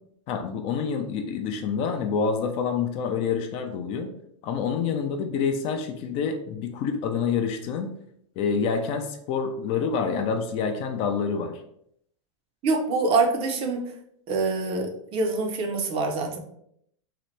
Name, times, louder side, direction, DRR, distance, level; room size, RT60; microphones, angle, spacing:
voice 1, 0.3-4.1 4.4-7.9 8.4-11.5, left 6 dB, 40° left, 5 dB, 0.4 m, -27 dB
voice 2, 12.6-13.8 14.3-16.4, right 3 dB, 35° right, 3 dB, 0.5 m, -25 dB
2.8 x 2.1 x 3.1 m, 0.70 s
supercardioid pair, 130°, 16 cm